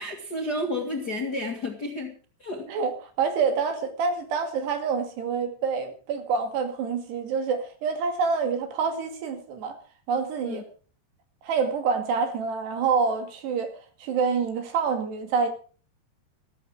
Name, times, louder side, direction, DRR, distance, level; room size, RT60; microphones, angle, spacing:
voice 1, 0.0-2.1 2.4-2.7 10.4-10.6, left 1 dB, 45° left, 1.3 m, -31 dB
voice 2, 3.2-9.8 10.1-10.6 11.4-13.7 14.0-15.5, right 5 dB, 80° right, 4.3 m, -27 dB
14.5 x 13.5 x 4.7 m
omnidirectional pair, 4.8 m